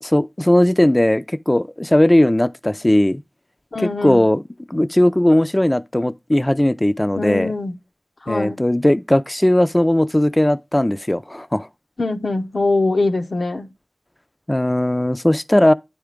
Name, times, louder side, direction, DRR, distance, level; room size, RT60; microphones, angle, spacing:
voice 1, 0.0-3.2 3.8-4.4 4.7-7.5 8.3-11.7 14.5-15.7, left 1 dB, 25° left, 0.4 m, -17 dB
voice 2, 3.7-4.2 7.2-7.7 8.3-8.6 12.0-13.7, left 2 dB, 90° left, 0.6 m, -22 dB
9.2 x 3.4 x 5.0 m
wide cardioid pair, 40°, 0 cm